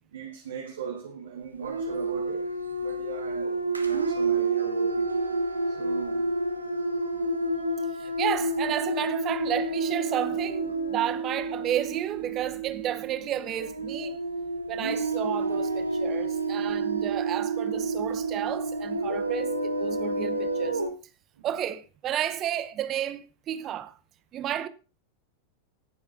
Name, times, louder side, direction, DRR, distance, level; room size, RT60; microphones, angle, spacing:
voice 1, 0.1-2.5 2.8-5.1 5.7-6.4, right 7 dB, 60° right, 1.2 m, -38 dB
sound 1, 1.6-20.9, right 2 dB, 85° right, 1.1 m, -29 dB
voice 2, 7.8-14.2 14.7-20.8 21.4-24.0 24.3-24.7, right 10 dB, 30° right, 0.8 m, -32 dB
18.0 x 7.2 x 2.5 m
figure-of-eight pair, 90°, 0 cm